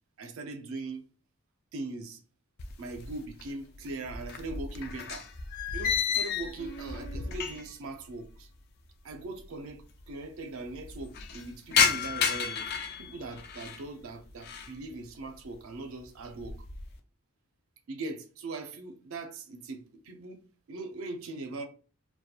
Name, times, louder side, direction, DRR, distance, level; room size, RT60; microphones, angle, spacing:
voice 1, 0.2-1.0 1.7-2.2 2.8-5.3 5.7-8.5 9.0-12.7 13.0-16.6 17.9-20.4 20.7-21.6, right 3 dB, 70° right, 0.4 m, -40 dB
sound 1, 2.6-3.5 3.8-7.9 8.1-8.2 9.1-9.2 9.4-9.5 9.7-10.2 10.6-13.8 14.3-14.8 15.2-15.6 16.0-16.9, left 6 dB, 45° left, 0.3 m, -32 dB
2.3 x 2.1 x 2.7 m
head